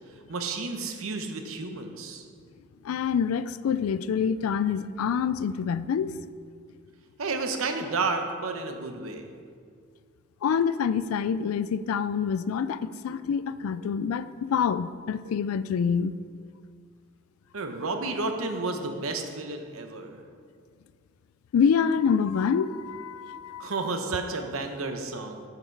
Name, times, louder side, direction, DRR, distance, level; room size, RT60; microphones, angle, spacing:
voice 1, 0.3-2.2 7.2-9.2 17.5-20.2 23.6-25.4, right 3 dB, 85° right, 5 dB, 0.8 m, -31 dB
voice 2, 2.8-6.2 10.4-16.1 21.5-23.7, left 6 dB, 90° left, 15 dB, 0.3 m, -26 dB
9.2 x 5.9 x 4.6 m, 2.1 s
head